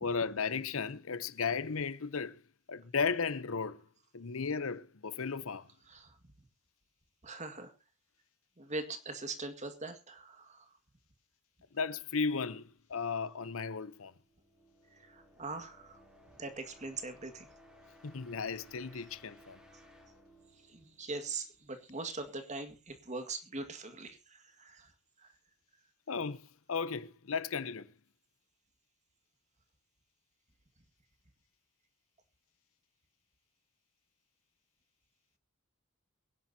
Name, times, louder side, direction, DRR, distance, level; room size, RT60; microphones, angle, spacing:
voice 1, 0.0-2.4 2.7-3.8 4.1-5.7 11.7-14.1 18.0-19.6 26.1-27.9, left 5 dB, 65° left, 0.7 m, -35 dB
voice 2, 5.9-6.2 7.2-7.7 8.6-10.7 14.9-16.0 16.4-17.5 20.7-24.9 25.2-25.3, right 3 dB, 30° right, 1.9 m, -42 dB
sound 1, 14.2-21.9, equal, 5° right, 3.3 m, -60 dB
23.5 x 10.5 x 2.8 m
head